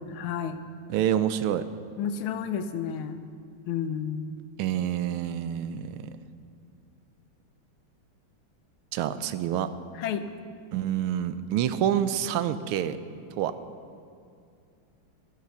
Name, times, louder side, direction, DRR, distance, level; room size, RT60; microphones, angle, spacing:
voice 1, 0.1-0.6 2.0-3.2 3.7-4.3 10.0-10.3, left 7 dB, 85° left, 10 dB, 1.6 m, -31 dB
voice 2, 0.9-1.6 4.6-6.0 8.9-9.7 10.7-13.0 13.4-13.5, right 10 dB, 90° right, 12 dB, 1.5 m, -27 dB
13.0 x 9.2 x 6.8 m, 2.4 s
omnidirectional pair, 2.3 m